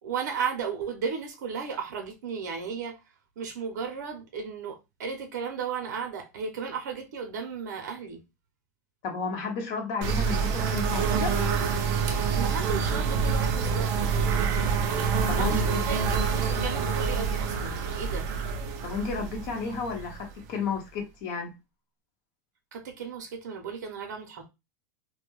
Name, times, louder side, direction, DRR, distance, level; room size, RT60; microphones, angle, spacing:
voice 1, 0.0-3.0 3.4-8.2 12.3-14.1 15.3-18.3 22.7-24.5, right 6 dB, 80° right, 0.7 m, -35 dB
voice 2, 9.0-11.4 15.3-15.8 18.8-21.5, left 4 dB, 45° left, 0.8 m, -32 dB
sound 1, 10.0-20.6, right 6 dB, 40° right, 0.5 m, -27 dB
2.2 x 2.1 x 3.0 m
supercardioid pair, 155°, 9 cm